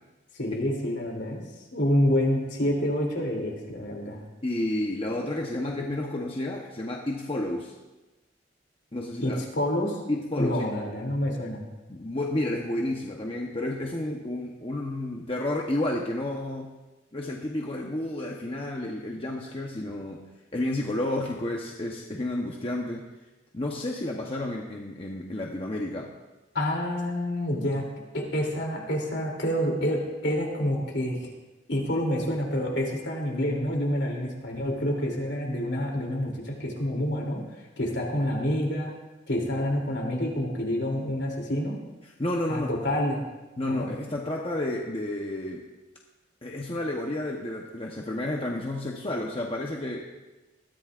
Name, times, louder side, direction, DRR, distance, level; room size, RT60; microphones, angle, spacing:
voice 1, 0.3-1.4 1.7-4.2 9.2-10.0 10.4-11.6 26.5-27.8 28.1-31.3 31.7-37.4 37.8-38.9 39.3-41.8 42.5-43.2 43.7-43.9, left 1 dB, 65° left, 0 dB, 3.0 m, -28 dB
voice 2, 4.4-7.7 8.9-9.4 10.1-10.8 11.9-16.7 17.1-20.2 20.5-23.1 23.5-26.1 42.0-42.7 43.6-45.6 46.4-50.1, left 1 dB, 30° left, 0 dB, 0.9 m, -31 dB
20.5 x 14.0 x 2.5 m, 1.1 s
head